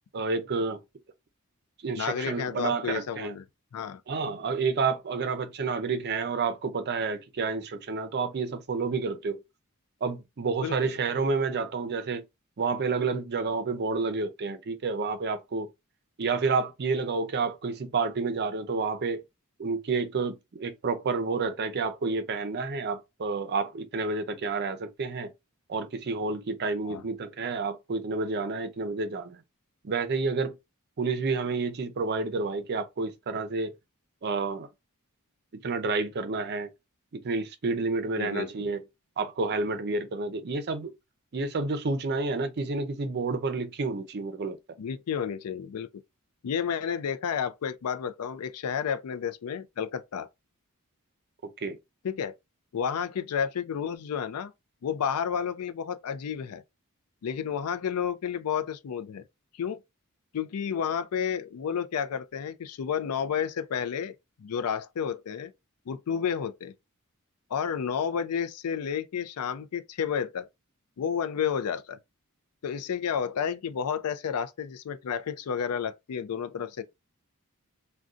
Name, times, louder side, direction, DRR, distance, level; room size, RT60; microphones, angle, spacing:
voice 1, 0.1-0.8 1.8-3.4 4.1-9.4 10.0-12.2 12.6-15.7 16.2-19.2 19.6-25.3 25.7-29.4 29.8-30.6 31.0-33.8 34.2-34.7 35.6-36.7 37.1-38.8 39.2-40.9 41.3-44.6 51.4-51.8, right 4 dB, 50° right, 0.5 m, -29 dB
voice 2, 1.9-3.4 3.7-4.0 10.6-10.8 26.9-27.0 38.2-38.7 44.8-45.9 46.4-50.3 52.0-52.3 52.7-54.5 54.8-56.6 57.2-59.2 59.5-59.8 60.3-65.5 65.9-66.7 67.5-70.5 71.0-72.0 72.6-76.8, left 7 dB, 85° left, 0.4 m, -31 dB
2.5 x 2.2 x 3.5 m
head